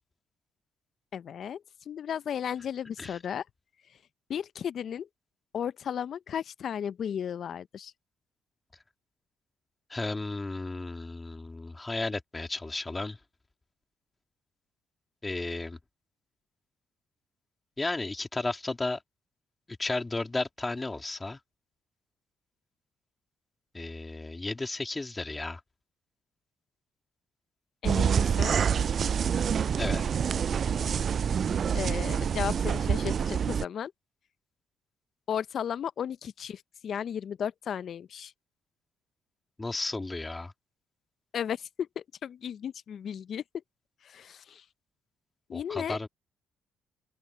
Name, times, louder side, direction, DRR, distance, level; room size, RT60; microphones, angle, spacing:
voice 1, 1.1-3.4 4.3-5.1 5.5-7.9 27.8-28.6 31.7-33.9 35.3-38.3 41.3-43.4 44.0-44.6 45.5-46.0, left 8 dB, 60° left, 0.6 m, -34 dB
voice 2, 9.9-13.2 15.2-15.8 17.8-19.0 19.7-21.4 23.7-25.6 29.8-30.0 39.6-40.5 45.5-46.1, left 2 dB, 25° left, 3.2 m, -33 dB
sound 1, 27.8-33.7, right 7 dB, 55° right, 0.4 m, -27 dB
open air
supercardioid pair, 60°, 0 cm